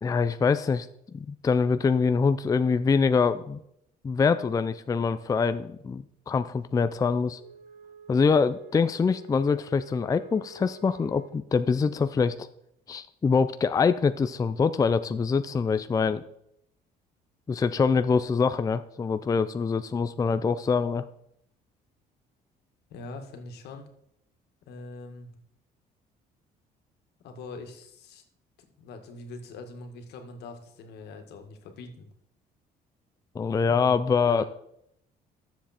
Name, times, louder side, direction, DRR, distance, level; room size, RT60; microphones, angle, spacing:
voice 1, 0.0-0.9 1.1-3.6 4.0-7.4 8.1-12.5 12.9-16.2 17.5-21.0 33.3-34.4, left 5 dB, 20° left, 11 dB, 0.4 m, -24 dB
Wind instrument woodwind instrument, 7.3-11.5, right 6 dB, 55° right, 1.2 m, -49 dB
voice 2, 22.9-23.9 24.7-25.3 27.2-28.2 28.8-32.1 33.6-33.9 34.3-34.4, left 3 dB, 75° left, 5 dB, 2.0 m, -43 dB
13.0 x 7.3 x 4.4 m, 0.75 s
cardioid pair, 110°, 17 cm